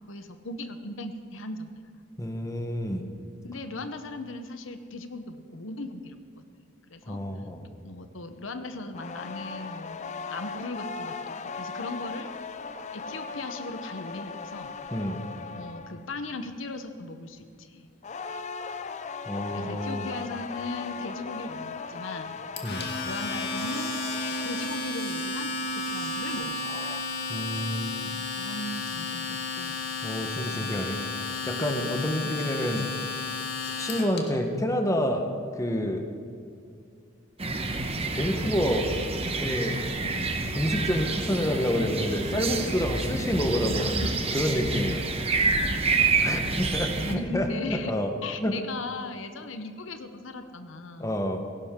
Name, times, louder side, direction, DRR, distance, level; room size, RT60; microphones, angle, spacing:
voice 1, 0.0-1.7 3.4-6.2 6.9-7.2 7.8-12.3 12.9-14.8 15.5-17.9 19.5-22.4 23.0-24.0 24.3-27.0 28.0-29.8 30.5-30.9 32.2-32.4 40.0-40.2 44.0-44.5 46.0-46.3 47.1-47.9 48.2-51.2, left 2 dB, 85° left, 8 dB, 0.9 m, -38 dB
voice 2, 2.2-3.0 7.1-7.6 14.9-15.2 19.3-20.1 22.6-22.9 27.3-27.9 30.0-33.0 33.8-36.1 38.1-38.9 39.4-39.8 40.5-44.1 44.3-45.6 46.2-48.1 48.4-48.6 51.0-51.4, equal, 15° left, 4 dB, 1.1 m, -28 dB
sound 1, 8.9-16.1 18.0-25.1 26.4-27.0, left 5 dB, 35° left, 0.5 m, -38 dB
Domestic sounds home sounds, 22.6-34.2, left 3 dB, 60° left, 1.8 m, -33 dB
sound 2, 37.4-47.1, right 3 dB, 30° right, 1.1 m, -28 dB
17.5 x 16.5 x 3.7 m, 2.3 s
head